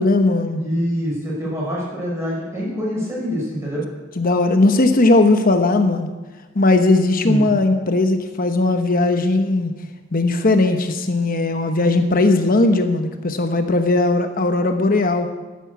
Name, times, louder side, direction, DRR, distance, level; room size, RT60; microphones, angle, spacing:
voice 1, 0.0-0.6 4.2-6.1 6.5-9.7 10.1-15.3, left 2 dB, 45° left, 7 dB, 1.0 m, -18 dB
voice 2, 0.6-3.8 7.2-7.5, equal, 15° right, -5 dB, 6.0 m, -25 dB
12.0 x 11.0 x 8.2 m, 1.3 s
head